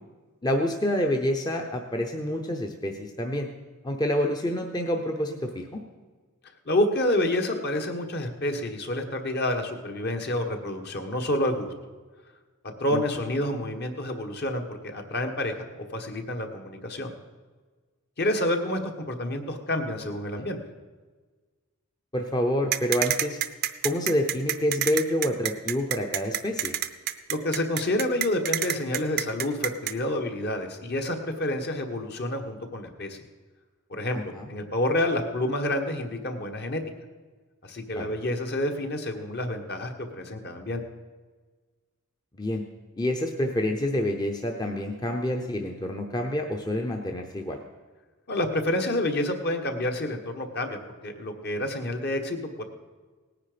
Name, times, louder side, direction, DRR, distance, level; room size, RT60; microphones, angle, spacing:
voice 1, 0.4-3.5 3.8-5.8 12.9-13.0 20.4-20.5 22.1-23.4 23.8-26.7 34.1-34.5 37.9-38.2 42.3-42.6 43.0-47.6, left 1 dB, 20° left, 3 dB, 0.7 m, -28 dB
voice 2, 6.6-11.7 12.8-17.1 18.2-20.6 27.3-33.2 33.9-36.8 37.6-40.8 48.3-52.6, left 1 dB, 45° left, 5 dB, 1.3 m, -28 dB
sound 1, 22.7-29.9, right 12 dB, 45° right, 0.6 m, -27 dB
18.0 x 9.9 x 5.1 m, 1.4 s
head